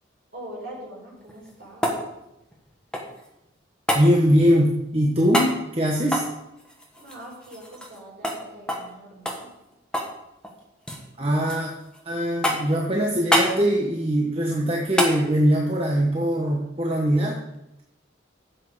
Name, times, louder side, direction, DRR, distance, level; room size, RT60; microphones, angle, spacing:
voice 1, 0.3-1.9 7.0-9.5, right 1 dB, 50° right, -4 dB, 4.6 m, -42 dB
sound 1, 1.2-3.3 3.9-4.1 5.3-5.6 6.0-8.0 8.2-8.4 8.7-8.9 9.3-10.2 10.4-11.0 11.5-12.0 12.4-12.8 13.3-13.6 15.0-15.2 17.5-17.6, equal, 5° left, 1.4 m, -26 dB
voice 2, 3.9-6.2 11.2-11.7 12.0-17.4, equal, 30° right, -1 dB, 1.1 m, -21 dB
12.0 x 7.8 x 5.0 m, 0.89 s
head